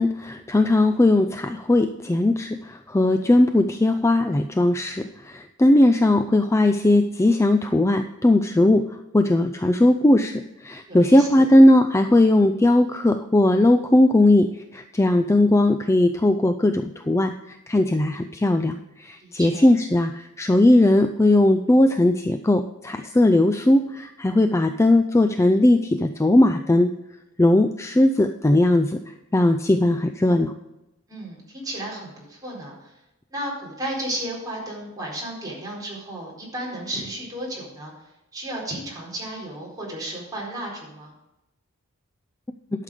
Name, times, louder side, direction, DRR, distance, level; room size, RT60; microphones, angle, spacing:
voice 1, 0.0-26.9 27.4-30.5, left 1 dB, 15° left, 8 dB, 0.4 m, -19 dB
voice 2, 10.9-11.4 19.2-19.7 31.1-32.7 33.3-37.9 38.3-41.1, right 1 dB, 20° right, -4 dB, 4.3 m, -33 dB
12.0 x 6.6 x 5.0 m, 0.94 s
head